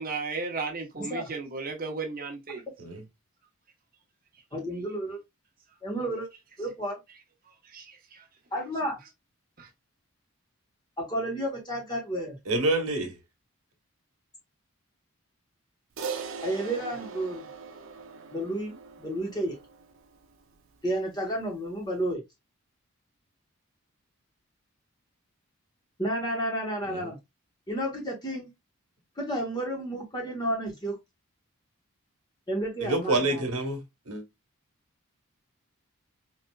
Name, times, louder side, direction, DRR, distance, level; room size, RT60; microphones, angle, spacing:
voice 1, 0.0-2.6 7.7-8.2 9.6-9.7, right 4 dB, 40° right, 0.9 m, -35 dB
voice 2, 1.0-1.3 4.5-5.2 5.8-6.3 6.6-7.0 8.5-9.0 11.0-12.4 16.4-17.5 18.3-19.6 20.8-22.2 26.0-27.2 27.7-28.5 29.2-31.0 32.5-33.4, right 1 dB, 20° left, 1.0 m, -31 dB
voice 3, 12.5-13.1 26.9-27.1 32.8-34.2, right 2 dB, 85° right, 1.1 m, -27 dB
Crash cymbal, 16.0-20.5, right 5 dB, 65° right, 0.5 m, -40 dB
4.1 x 2.5 x 2.2 m
head